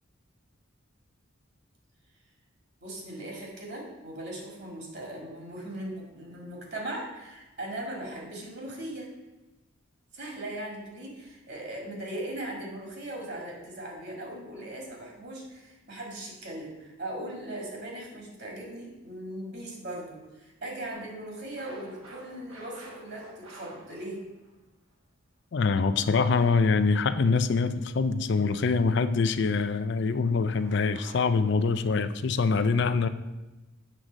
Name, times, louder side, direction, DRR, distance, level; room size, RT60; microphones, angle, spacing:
voice 1, 2.8-9.1 10.1-24.2, right 1 dB, 50° right, -1 dB, 2.0 m, -39 dB
sound 1, 20.9-24.6 26.1-26.9 30.6-31.7, right 1 dB, 85° right, 1.5 m, -50 dB
voice 2, 25.5-33.1, left 4 dB, 55° left, 12 dB, 0.4 m, -24 dB
7.7 x 3.8 x 6.2 m, 1.1 s
head